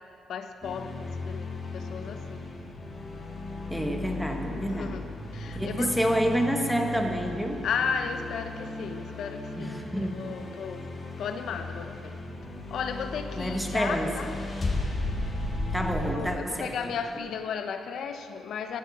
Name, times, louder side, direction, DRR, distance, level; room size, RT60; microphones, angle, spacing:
voice 1, 0.3-2.4 4.7-5.1 5.3-6.0 7.6-10.9 11.2-12.2 12.7-14.4 16.0-18.8, left 6 dB, 70° left, 7 dB, 0.8 m, -34 dB
sound 1, 0.6-16.1, left 2 dB, 35° left, 2.1 m, -36 dB
voice 2, 3.7-5.0 5.5-7.7 9.6-10.3 13.4-14.1 15.7-16.9, equal, ahead, 3 dB, 1.4 m, -28 dB
14.0 x 8.9 x 7.2 m, 2.4 s
cardioid pair, 110°, 0 cm